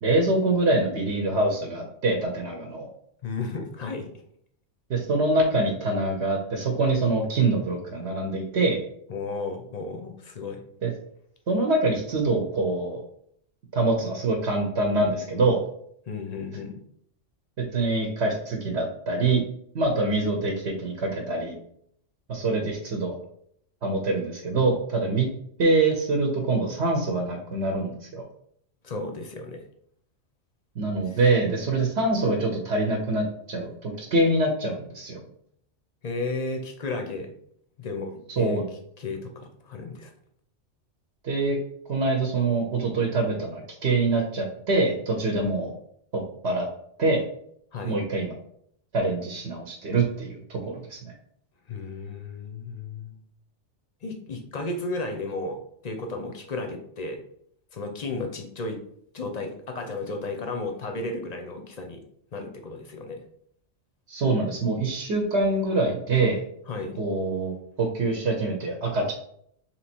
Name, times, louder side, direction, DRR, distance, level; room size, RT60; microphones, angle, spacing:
voice 1, 0.0-2.9 4.9-8.8 10.8-10.9 11.5-13.0 13.7-15.6 17.7-19.4 19.7-21.5 22.3-23.2 23.8-25.3 25.6-28.2 30.8-35.2 38.3-38.6 41.2-41.6 41.9-45.7 46.1-46.7 47.0-47.2 47.8-48.3 48.9-51.1 64.1-66.4 67.0-69.1, right 2 dB, 65° right, 2 dB, 1.0 m, -25 dB
voice 2, 3.2-4.1 9.1-10.6 16.1-16.7 22.4-22.7 28.8-29.6 36.0-37.3 37.8-38.6 39.0-40.1 47.7-48.0 51.7-53.2 54.0-57.2 57.7-58.8 59.1-62.0 62.3-63.2 66.7-67.0, left 3 dB, 45° left, 5 dB, 0.5 m, -33 dB
3.5 x 3.0 x 4.2 m, 0.67 s
omnidirectional pair, 1.3 m